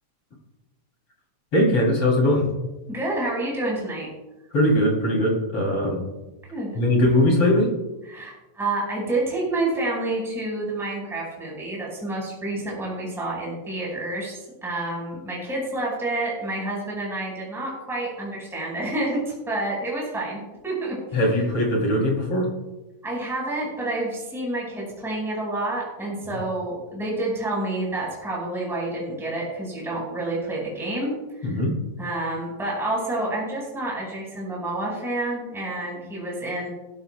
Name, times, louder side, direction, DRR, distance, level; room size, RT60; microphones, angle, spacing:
voice 1, 1.5-2.5 4.5-6.1 6.7-7.7 21.1-22.5 26.3-26.4 31.4-31.8, left 1 dB, 40° left, -1 dB, 4.0 m, -20 dB
voice 2, 2.9-4.1 6.5-6.7 8.1-19.2 19.5-21.2 23.0-31.1 31.4-31.6 32.0-36.7, right 2 dB, ahead, -5 dB, 4.9 m, -29 dB
20.5 x 13.5 x 2.3 m, 1.0 s
omnidirectional pair, 4.1 m